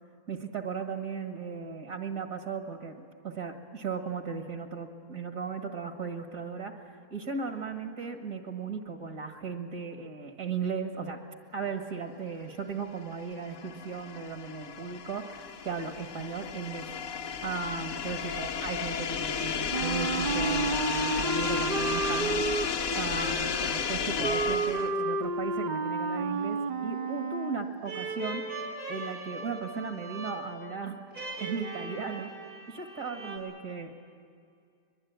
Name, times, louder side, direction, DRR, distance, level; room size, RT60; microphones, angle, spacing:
voice 1, 0.3-3.0 3.2-11.2 11.5-16.9 17.4-22.4 22.9-28.4 28.9-31.0 31.4-32.3 32.7-33.9, right 5 dB, 65° right, 4 dB, 2.2 m, -36 dB
sound 1, 13.1-25.0, left 7 dB, 70° left, 1.3 m, -33 dB
Wind instrument woodwind instrument, 19.7-27.8, right 3 dB, 40° right, 0.6 m, -31 dB
sound 2, 27.9-33.4, right 2 dB, 85° right, 4.7 m, -40 dB
23.0 x 22.5 x 9.4 m, 2.3 s
omnidirectional pair, 1.5 m